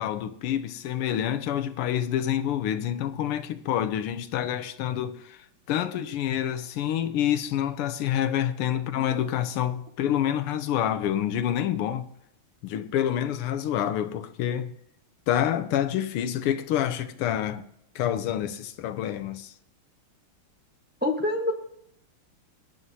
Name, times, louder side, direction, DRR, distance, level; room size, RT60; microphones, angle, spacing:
voice 1, 0.0-12.1 12.6-14.7 15.3-17.6 17.9-19.5, left 10 dB, 85° left, 1.7 m, -27 dB
voice 2, 21.0-21.5, left 1 dB, 10° right, 0.4 m, -26 dB
22.5 x 9.4 x 2.8 m
omnidirectional pair, 2.4 m